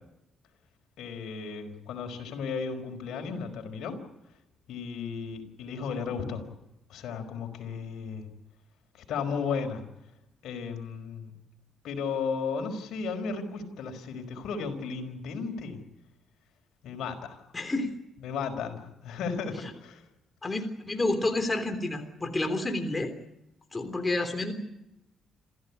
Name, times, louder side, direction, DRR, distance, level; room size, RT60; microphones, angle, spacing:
voice 1, 1.0-4.0 4.7-6.4 6.9-8.3 8.9-9.8 10.4-11.3 11.8-15.8 16.8-17.4 18.2-20.0, left 5 dB, 80° left, 4 dB, 5.0 m, -34 dB
voice 2, 17.5-17.9 20.4-23.1 23.7-24.5, left 2 dB, 20° left, 6 dB, 3.4 m, -29 dB
27.5 x 15.5 x 9.8 m, 0.88 s
cardioid pair, 90°, 0 cm